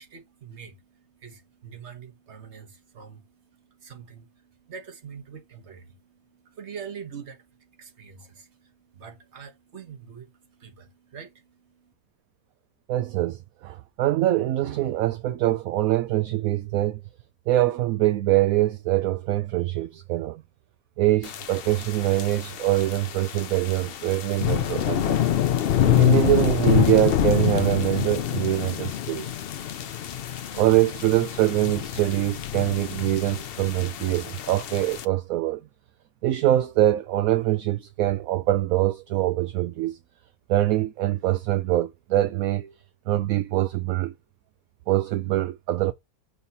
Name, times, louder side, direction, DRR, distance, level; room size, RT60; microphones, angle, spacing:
voice 1, 0.0-11.9, right 6 dB, 50° right, 1.5 m, -44 dB
voice 2, 12.9-17.0 17.5-20.4 21.0-25.2 25.8-29.3 30.5-35.6 36.2-40.0 40.5-42.7 43.1-44.1 44.9-45.9, right 14 dB, 70° right, 1.0 m, -24 dB
sound 1, 21.2-35.0, left 11 dB, 65° left, 0.6 m, -26 dB
6.8 x 2.7 x 5.5 m
omnidirectional pair, 1.6 m